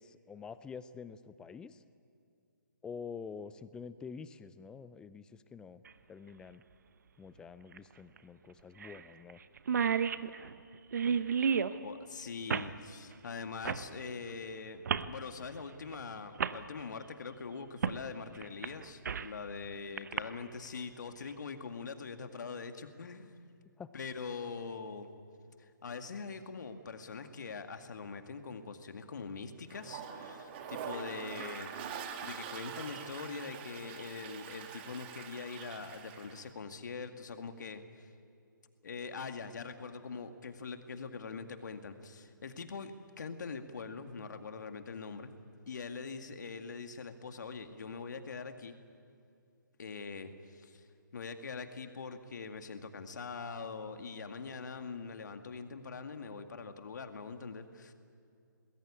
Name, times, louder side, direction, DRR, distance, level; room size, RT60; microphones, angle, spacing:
voice 1, 0.0-1.8 2.8-5.8 6.1-6.6 7.2-9.4 23.8-23.9, left 6 dB, 5° left, 15 dB, 0.6 m, -47 dB
sound 1, 5.9-6.0 7.7-7.8 8.2-8.3 8.8-9.0 9.3-9.4 9.6-11.8 12.5-12.7 13.6-13.9 14.9-15.1 15.9-16.0 16.4-16.6 17.8-18.0 18.4-19.4 20.0-20.2, right 6 dB, 55° right, 1.0 m, -31 dB
voice 2, 11.8-23.4 23.9-25.1 25.6-31.9 32.2-38.1 38.8-42.9 43.2-45.3 45.7-48.7 49.8-50.9 51.1-57.9, left 5 dB, 60° left, 7 dB, 2.1 m, -43 dB
Toilet flush, 29.7-36.5, right 7 dB, 30° right, 2.0 m, -44 dB
26.0 x 20.5 x 8.7 m, 2.5 s
figure-of-eight pair, 140°, 11 cm